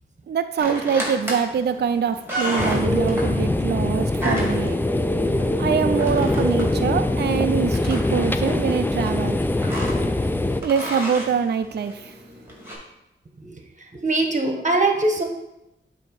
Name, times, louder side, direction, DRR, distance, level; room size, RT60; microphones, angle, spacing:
voice 1, 0.3-4.8 5.6-9.4 10.6-12.1, right 7 dB, 55° right, 9 dB, 0.4 m, -24 dB
sound 1, 0.6-12.7, equal, 10° right, 2.3 m, -34 dB
sound 2, 2.6-10.6, left 2 dB, 10° left, 0.4 m, -23 dB
voice 2, 14.0-15.2, right 2 dB, 35° right, 3 dB, 1.2 m, -21 dB
7.6 x 2.8 x 5.3 m, 0.89 s
cardioid pair, 50°, 20 cm